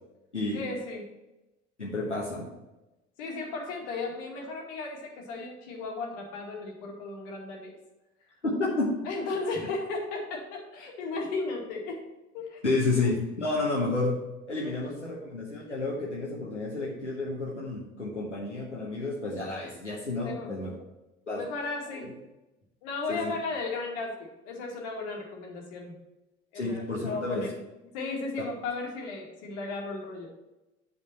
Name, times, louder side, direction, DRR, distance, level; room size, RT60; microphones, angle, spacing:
voice 1, 0.5-1.1 3.2-7.8 9.0-12.0 12.3-12.6 12.9-13.1 14.5-15.3 20.2-20.6 21.3-22.1 22.8-26.0 26.5-27.5 27.9-30.3, left 3 dB, 60° left, 0 dB, 2.2 m, -35 dB
voice 2, 1.8-2.5 8.4-8.9 12.6-14.2 14.5-20.7 21.3-21.4 23.1-23.3 26.5-27.4, left 2 dB, 90° left, -5 dB, 1.3 m, -30 dB
9.8 x 5.5 x 4.3 m, 0.99 s
figure-of-eight pair, 60°, 34 cm